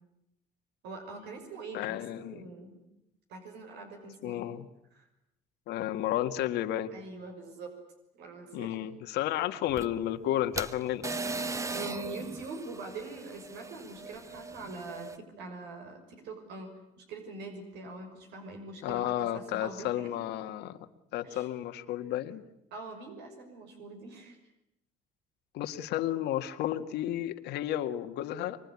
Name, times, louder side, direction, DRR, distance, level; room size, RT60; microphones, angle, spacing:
voice 1, 0.8-2.8 3.3-4.4 4.9-5.1 6.9-7.7 8.2-8.9 11.7-16.7 17.0-20.1 21.2-21.5 22.7-24.4, right 3 dB, 85° right, 4 dB, 6.2 m, -43 dB
voice 2, 1.7-2.5 4.2-4.7 5.7-6.9 8.5-11.1 18.8-20.8 21.1-22.4 25.5-28.6, left 12 dB, 85° left, 7 dB, 1.9 m, -32 dB
sound 1, 9.7-15.2, right 3 dB, 20° right, 1.1 m, -39 dB
25.0 x 24.0 x 9.9 m, 0.84 s
cardioid pair, 110°, 17 cm